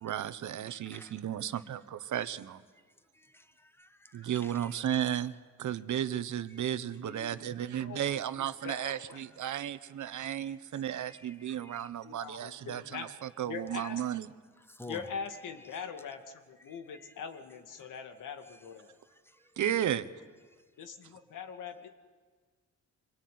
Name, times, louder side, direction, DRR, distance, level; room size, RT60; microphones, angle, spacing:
voice 1, 0.0-2.6 4.1-14.3 19.6-20.1, right 10 dB, 70° right, 13 dB, 1.3 m, -34 dB
voice 2, 3.8-4.1 7.1-7.3 11.0-11.8 14.8-15.0, left 1 dB, 5° left, 10 dB, 1.6 m, -48 dB
voice 3, 8.4-9.2 12.0-13.1 13.5-14.0 14.9-18.9 20.8-21.9, left 6 dB, 90° left, 6 dB, 2.4 m, -42 dB
25.5 x 22.5 x 9.6 m, 1.5 s
cardioid pair, 100°, 30 cm